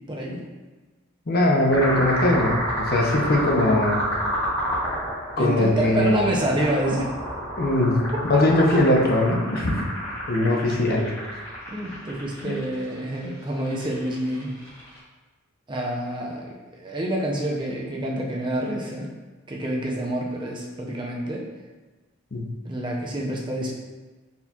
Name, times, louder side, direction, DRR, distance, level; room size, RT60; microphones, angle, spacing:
voice 1, 0.1-0.5 5.4-7.1 10.4-10.8 11.7-14.5 15.7-19.1 19.5-21.5 22.6-23.7, right 1 dB, 20° right, -2 dB, 0.5 m, -28 dB
voice 2, 1.3-4.0 5.4-6.2 7.6-9.9 10.3-11.4 12.4-12.6 22.3-22.5, left 1 dB, 45° left, -1 dB, 0.6 m, -21 dB
sound 1, 1.7-15.0, equal, 15° left, 1.5 m, -30 dB
4.3 x 4.1 x 2.3 m, 1.2 s
head